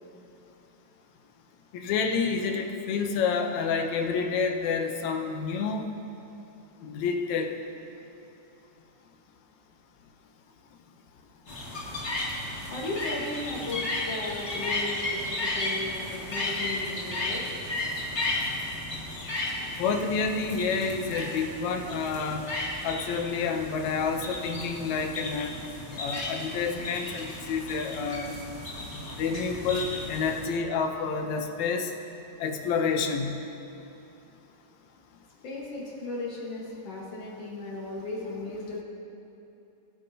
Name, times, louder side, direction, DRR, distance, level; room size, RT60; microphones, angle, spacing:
voice 1, 1.7-5.8 6.8-7.5 19.8-22.5 22.8-25.6 26.0-28.3 29.1-31.9 32.4-33.4, left 5 dB, 80° left, 4 dB, 2.1 m, -29 dB
sound 1, 11.5-30.4, left 2 dB, 30° left, 1.5 m, -34 dB
voice 2, 12.7-17.5 35.4-38.8, left 2 dB, 60° left, -3 dB, 2.4 m, -36 dB
20.5 x 9.2 x 2.8 m, 2.9 s
omnidirectional pair, 3.3 m